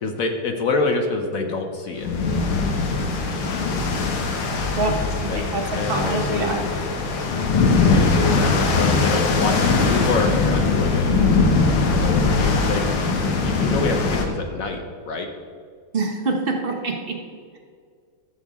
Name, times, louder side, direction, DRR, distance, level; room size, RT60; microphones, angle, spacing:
voice 1, 0.0-2.1 5.2-5.4 5.8-6.6 7.7-11.5 12.0-12.9 13.4-15.3, left 3 dB, 60° left, 4 dB, 0.9 m, -26 dB
sound 1, 2.0-14.3, left 4 dB, 85° left, 1.9 m, -21 dB
voice 2, 5.9-6.6 15.9-16.9, right 3 dB, 35° right, 1 dB, 0.9 m, -24 dB
14.0 x 6.5 x 3.6 m, 2.1 s
omnidirectional pair, 2.2 m